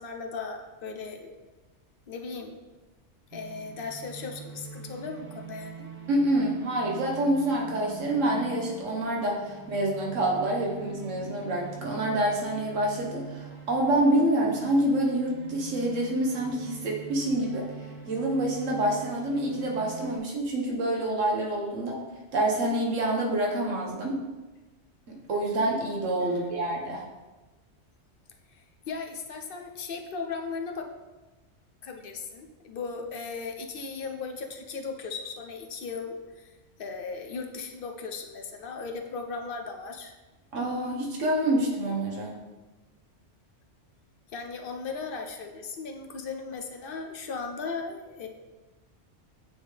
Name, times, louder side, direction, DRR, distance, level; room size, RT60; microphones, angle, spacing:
voice 1, 0.0-1.3 2.1-2.6 3.3-5.9 26.2-26.5 28.5-30.9 31.8-40.1 44.3-48.3, left 4 dB, 55° left, 3 dB, 0.7 m, -37 dB
sound 1, 3.3-20.2, right 4 dB, 35° right, 1.0 m, -43 dB
voice 2, 6.1-17.7 18.1-22.0 22.3-24.2 25.1-27.0 40.5-42.4, right 1 dB, 90° right, -1 dB, 1.5 m, -27 dB
8.6 x 3.6 x 3.3 m, 1.2 s
omnidirectional pair, 1.2 m